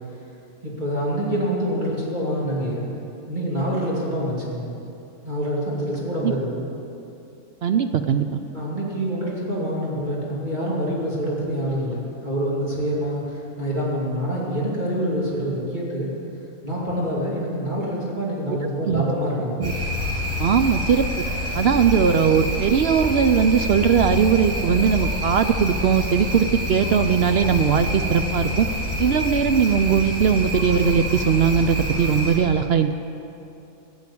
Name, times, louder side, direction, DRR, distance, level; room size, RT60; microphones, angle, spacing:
voice 1, 0.6-2.9 3.3-4.7 5.2-6.6 8.5-16.1 16.6-19.7, equal, 30° right, -6 dB, 2.6 m, -26 dB
voice 2, 7.6-8.4 18.8-19.0 19.6-19.7 20.4-21.3 21.5-28.7 29.0-32.9, right 7 dB, 60° right, 8 dB, 0.7 m, -19 dB
sound 1, 19.6-32.3, left 1 dB, 10° right, 3.9 m, -27 dB
15.5 x 8.2 x 8.5 m, 2.8 s
omnidirectional pair, 1.5 m